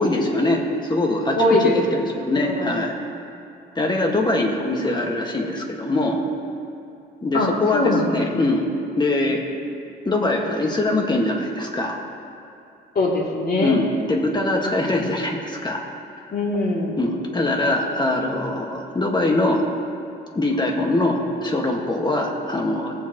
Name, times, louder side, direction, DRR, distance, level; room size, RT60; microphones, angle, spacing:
voice 1, 0.0-2.9 3.7-6.2 7.2-8.7 9.0-9.4 10.0-12.0 13.6-15.8 17.0-19.6 20.3-22.9, left 2 dB, 20° left, 1 dB, 1.7 m, -22 dB
voice 2, 1.3-2.0 2.4-2.7 7.3-8.0 12.9-13.8 16.3-16.9, left 2 dB, 50° left, -4 dB, 2.9 m, -21 dB
20.5 x 7.2 x 3.1 m, 2.6 s
cardioid pair, 90°, 20 cm